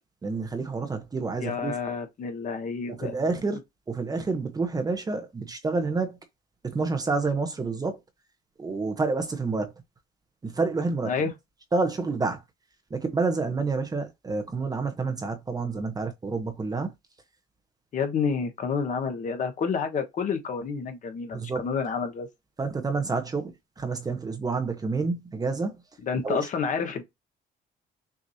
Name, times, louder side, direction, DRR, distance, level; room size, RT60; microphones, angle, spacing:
voice 1, 0.2-1.7 2.9-3.6 3.9-6.2 6.6-8.0 8.6-9.7 10.4-11.1 11.7-12.4 12.9-16.9 21.3-21.6 22.6-25.8 26.2-26.4, right 4 dB, 20° right, 0.9 m, -28 dB
voice 2, 1.4-3.2 11.0-11.3 17.9-22.3 26.0-27.0, left 5 dB, 50° left, 1.3 m, -29 dB
6.3 x 2.7 x 2.8 m
cardioid pair, 110°, 17 cm